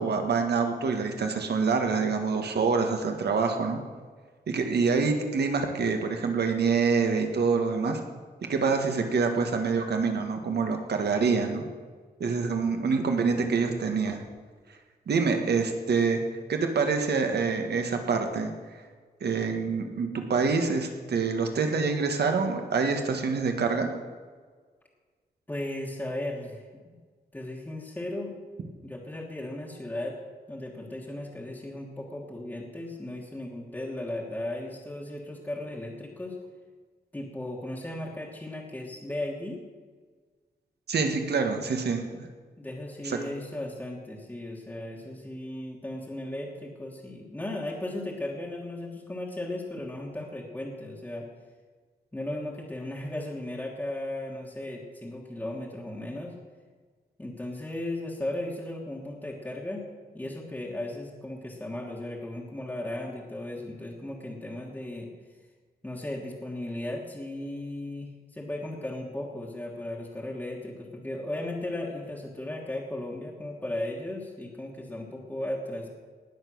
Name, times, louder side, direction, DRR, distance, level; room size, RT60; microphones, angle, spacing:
voice 1, 0.0-3.8 4.5-8.0 8.5-11.6 12.2-14.2 15.1-16.2 16.5-18.5 19.2-23.9 40.9-42.0 43.0-43.2, right 5 dB, 85° right, 5 dB, 1.7 m, -26 dB
voice 2, 25.5-26.9 27.3-28.4 28.8-30.2 30.5-36.4 37.1-39.6 42.1-42.2 42.6-51.3 52.1-56.3 57.2-59.9 60.1-65.1 65.8-75.9, left 1 dB, 10° left, -2 dB, 1.5 m, -36 dB
19.0 x 7.3 x 6.3 m, 1.5 s
wide cardioid pair, 165°, 17 cm